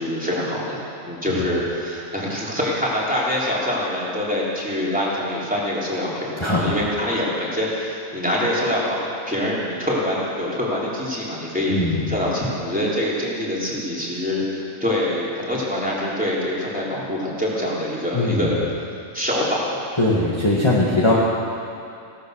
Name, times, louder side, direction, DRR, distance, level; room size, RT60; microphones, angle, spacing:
voice 1, 0.0-11.8 12.1-18.6 19.1-19.8, left 1 dB, 5° right, -7 dB, 3.5 m, -25 dB
voice 2, 6.4-6.7 11.7-12.1 18.1-18.5 20.0-21.1, left 2 dB, 20° left, -7 dB, 1.9 m, -20 dB
16.5 x 13.5 x 6.5 m, 2.5 s
omnidirectional pair, 1.3 m